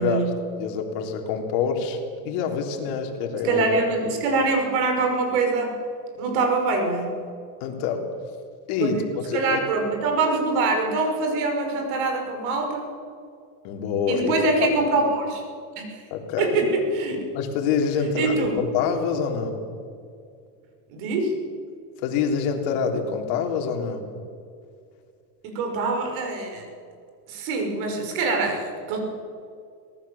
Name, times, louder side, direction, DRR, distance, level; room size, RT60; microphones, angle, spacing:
voice 1, 0.0-0.3 3.4-5.8 6.2-7.2 8.8-9.0 9.3-12.8 14.1-15.4 15.8-16.0 16.4-17.3 18.0-18.6 20.9-21.3 25.4-26.6 27.3-29.0, right 3 dB, 70° right, 3 dB, 5.9 m, -24 dB
voice 2, 0.5-3.7 7.6-8.1 8.7-9.6 13.6-14.7 16.1-16.7 17.3-19.6 22.0-24.1, left 6 dB, 65° left, 3 dB, 3.7 m, -26 dB
24.5 x 18.5 x 7.2 m, 2.3 s
cardioid pair, 150°, 43 cm